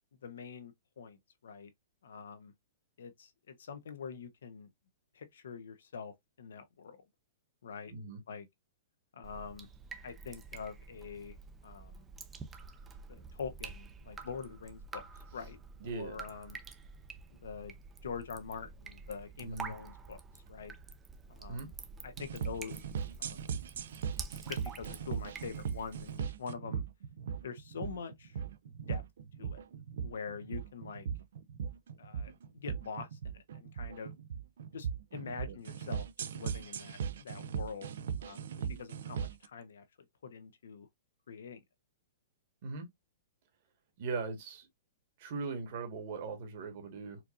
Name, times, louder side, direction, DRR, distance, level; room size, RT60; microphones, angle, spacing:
voice 1, 0.1-1.7 2.0-2.5 3.0-4.7 5.1-7.0 7.6-7.9 8.3-8.5 9.1-9.7 10.0-11.3 11.6-12.1 13.1-15.0 15.3-15.6 15.8-16.6 17.4-17.7 18.0-20.7 21.3-21.7 22.0-22.8 23.2-23.5 24.5-26.8 27.4-28.4 28.9-29.0 29.4-29.6 30.0-31.1 32.0-34.1 34.7-37.9 38.2-39.8 40.2-40.9 41.3-41.6, left 6 dB, 85° left, 0.8 m, -45 dB
Drip, 9.2-26.2, right 5 dB, 10° right, 0.5 m, -48 dB
voice 2, 15.8-16.2 19.4-19.7 21.5-21.7 35.5-35.6 42.6-42.9 44.0-44.7 45.2-47.2, right 4 dB, 45° right, 1.5 m, -39 dB
sound 1, 22.2-39.5, right 7 dB, 70° right, 0.4 m, -39 dB
4.4 x 2.6 x 2.5 m
hypercardioid pair, 160°, 0 cm